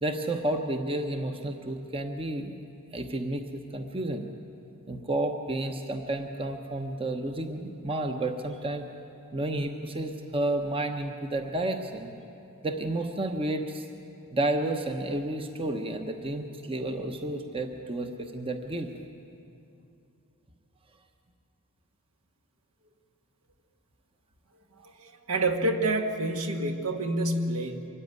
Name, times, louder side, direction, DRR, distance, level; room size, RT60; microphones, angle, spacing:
voice 1, 0.0-2.5 2.9-4.3 4.9-8.9 9.3-12.1 12.6-13.9 14.3-18.9, right 1 dB, 25° right, 5 dB, 1.0 m, -31 dB
voice 2, 24.8-27.9, right 2 dB, 65° right, 4 dB, 1.7 m, -28 dB
24.5 x 14.0 x 9.5 m, 2.6 s
head